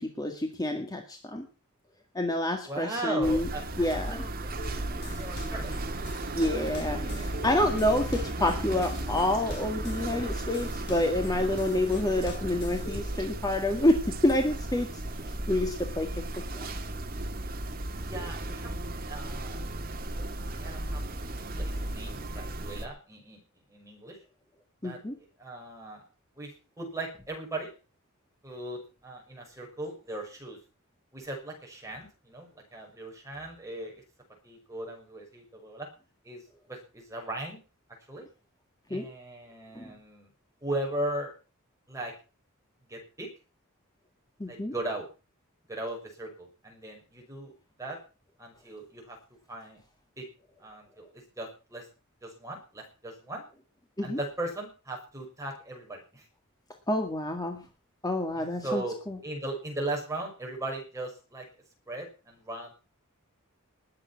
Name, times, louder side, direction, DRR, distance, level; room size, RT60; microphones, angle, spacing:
voice 1, 0.0-1.4 2.1-3.5 3.8-4.1 6.3-16.1 16.5-16.7 24.8-25.2 38.9-39.1 39.7-39.9 44.4-44.7 54.0-54.2 56.9-57.6 58.0-59.2, left 1 dB, 20° left, 4 dB, 2.0 m, -28 dB
voice 2, 2.6-5.7 18.0-18.7 19.1-21.0 21.3-23.4 23.7-24.2 24.8-25.0 25.4-26.0 26.4-27.7 28.4-30.6 31.1-34.0 34.4-35.9 36.2-36.4 36.7-37.6 38.1-38.3 38.9-40.3 40.6-41.3 41.9-42.1 42.9-43.3 44.5-45.1 45.7-47.5 47.8-48.0 48.4-49.2 49.5-49.8 50.2-50.3 50.6-51.9 52.2-53.4 54.0-56.3 58.3-59.0 59.2-61.5 61.9-62.7, right 2 dB, 15° right, 0 dB, 6.3 m, -38 dB
sound 1, 3.2-22.9, right 1 dB, 45° right, 2.1 m, -35 dB
sound 2, 4.6-13.3, left 1 dB, 55° left, 5.2 m, -44 dB
20.5 x 8.9 x 5.9 m, 0.35 s
head